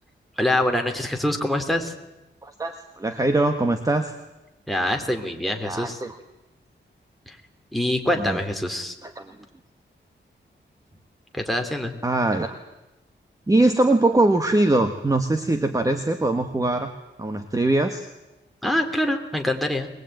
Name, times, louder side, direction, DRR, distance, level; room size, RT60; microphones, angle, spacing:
voice 1, 0.4-1.9 4.7-6.0 7.3-7.4 7.7-8.9 11.3-11.9 18.6-19.9, left 1 dB, ahead, 6 dB, 3.3 m, -25 dB
voice 2, 2.4-4.1 5.6-6.1 8.2-8.4 9.0-9.3 12.0-12.6 13.5-16.9 17.2-18.1, right 2 dB, 15° right, 7 dB, 1.5 m, -22 dB
23.0 x 21.0 x 9.2 m, 0.99 s
wide cardioid pair, 125°, 19 cm